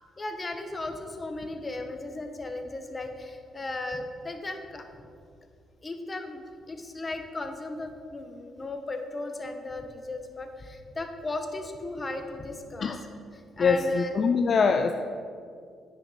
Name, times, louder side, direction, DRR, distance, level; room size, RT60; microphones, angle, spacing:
voice 1, 0.2-4.9 5.8-12.9 13.3-14.1, left 2 dB, 25° left, 5 dB, 1.1 m, -36 dB
voice 2, 13.6-14.9, left 5 dB, 50° left, 5 dB, 0.5 m, -23 dB
9.2 x 6.3 x 5.6 m, 2.3 s
cardioid pair, 90°, 0 cm